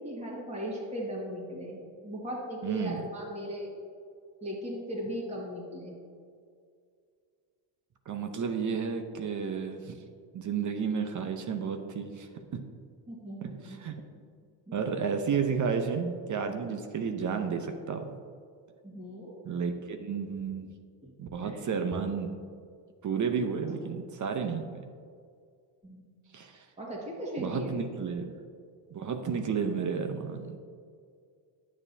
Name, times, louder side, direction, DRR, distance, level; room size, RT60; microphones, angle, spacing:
voice 1, 0.0-3.7 4.4-6.0 13.1-13.8 14.7-14.8 18.8-19.4 21.0-21.1 21.4-21.7 25.8-26.1 26.8-27.7, equal, 15° right, -4 dB, 1.8 m, -38 dB
voice 2, 2.6-3.0 8.1-10.0 10.3-12.6 13.4-14.0 14.7-18.1 19.4-20.7 21.2-22.3 23.0-24.8 26.3-26.7 27.4-28.3 28.9-30.6, right 6 dB, 40° right, 6 dB, 0.7 m, -32 dB
9.5 x 7.2 x 2.7 m, 2.2 s
supercardioid pair, 90°, 50 cm